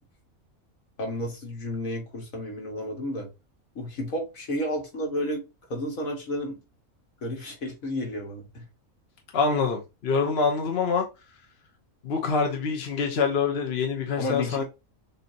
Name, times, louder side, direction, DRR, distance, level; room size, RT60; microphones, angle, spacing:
voice 1, 1.0-3.3 3.8-5.4 5.7-6.6 7.2-8.6 14.2-14.6, left 1 dB, 65° left, 2.1 m, -31 dB
voice 2, 9.3-11.1 12.0-14.6, left 5 dB, 50° left, 1.0 m, -25 dB
6.7 x 2.8 x 2.7 m
omnidirectional pair, 1.5 m